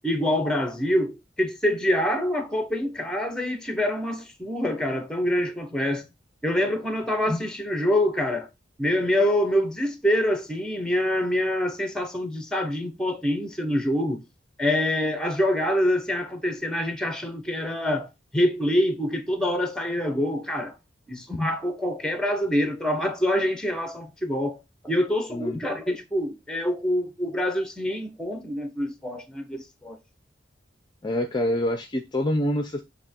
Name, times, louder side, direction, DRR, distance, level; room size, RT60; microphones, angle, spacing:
voice 1, 0.0-6.0 6.4-8.5 8.8-14.2 14.6-18.1 18.3-20.8 21.1-24.6 24.8-30.0, left 1 dB, 5° left, 1.0 m, -25 dB
voice 2, 31.0-32.8, left 1 dB, 25° left, 0.6 m, -26 dB
7.2 x 3.0 x 4.4 m
head